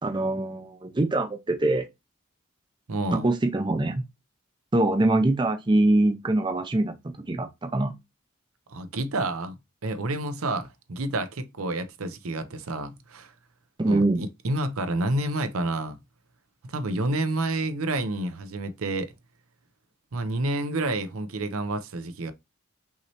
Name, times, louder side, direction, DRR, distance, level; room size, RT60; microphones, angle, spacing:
voice 1, 0.0-1.9 3.1-4.0 4.7-6.9 7.3-7.9 13.8-14.2, right 2 dB, 20° right, 0.4 m, -23 dB
voice 2, 2.9-3.3 8.7-9.6 9.8-13.3 13.9-16.0 16.6-19.1 20.1-22.3, right 2 dB, 85° right, 0.7 m, -29 dB
5.6 x 3.1 x 2.9 m
head